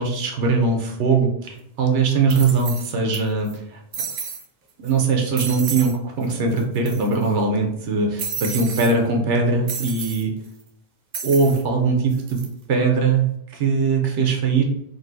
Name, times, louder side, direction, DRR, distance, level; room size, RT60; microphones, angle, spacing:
voice 1, 0.0-3.8 4.8-10.3 11.2-12.4 12.7-14.6, right 4 dB, 90° right, 2 dB, 0.9 m, -21 dB
sound 1, 1.5-1.6 2.3-3.2 3.5-3.6 3.9-4.4 4.9-5.0 5.4-5.9 6.2-6.3 6.6-7.3 8.2-8.9 9.7-10.2 11.1-11.6 12.1-12.5, right 6 dB, 60° right, 0.7 m, -31 dB
3.8 x 2.3 x 2.5 m, 0.76 s
omnidirectional pair, 1.2 m